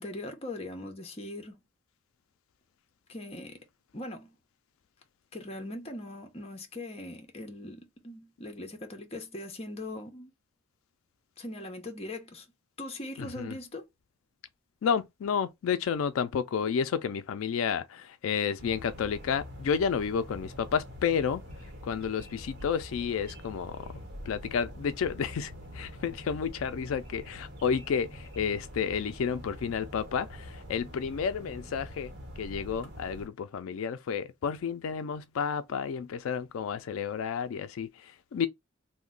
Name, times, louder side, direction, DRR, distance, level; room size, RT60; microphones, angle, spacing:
voice 1, 0.0-1.6 3.1-3.6 3.9-4.3 5.3-10.3 11.4-12.5 12.8-13.9, left 1 dB, 30° left, 0.7 m, -40 dB
voice 2, 13.2-13.6 14.8-21.4 21.8-23.9 24.3-38.5, left 6 dB, 85° left, 0.3 m, -31 dB
sound 1, 18.6-33.3, equal, 55° right, 0.9 m, -45 dB
2.9 x 2.1 x 3.7 m
head